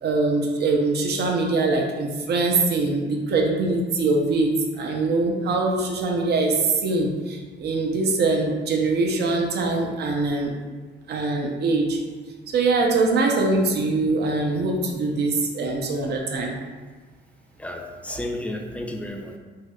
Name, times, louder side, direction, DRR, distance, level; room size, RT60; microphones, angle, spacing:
voice 1, 0.0-10.5 11.1-12.0 12.5-16.5, right 3 dB, 55° right, 1 dB, 0.5 m, -23 dB
voice 2, 17.6-19.4, left 1 dB, 5° left, 2 dB, 0.3 m, -32 dB
4.4 x 2.1 x 2.3 m, 1.4 s
cardioid pair, 90°, 20 cm